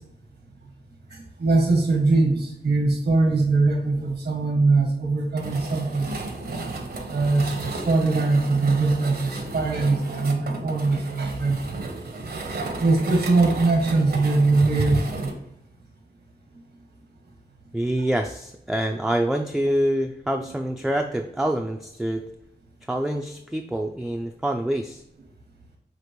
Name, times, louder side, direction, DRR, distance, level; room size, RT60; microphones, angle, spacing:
voice 1, 1.1-6.1 7.1-11.8 12.8-15.3, right 3 dB, 90° right, 0 dB, 1.2 m, -22 dB
sound 1, 5.4-15.3, right 2 dB, 70° right, 0.8 m, -34 dB
voice 2, 17.7-22.2 22.9-25.0, right 1 dB, 5° right, 3 dB, 0.3 m, -26 dB
5.8 x 2.9 x 3.0 m, 0.78 s
wide cardioid pair, 70°, 17 cm